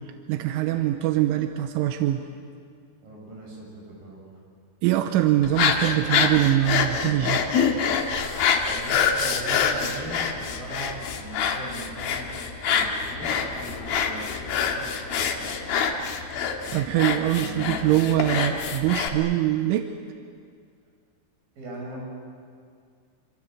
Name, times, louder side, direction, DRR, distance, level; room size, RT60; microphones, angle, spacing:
voice 1, 0.3-2.2 4.8-7.4 16.7-19.9, right 13 dB, 85° right, 6 dB, 3.4 m, -23 dB
voice 2, 3.0-4.4 8.7-15.6 17.3-18.0 21.6-22.0, right 1 dB, 45° right, -3 dB, 9.2 m, -40 dB
sound 1, 5.4-19.1, left 6 dB, 60° left, 3.0 m, -26 dB
27.0 x 26.5 x 7.9 m, 2.1 s
omnidirectional pair, 5.5 m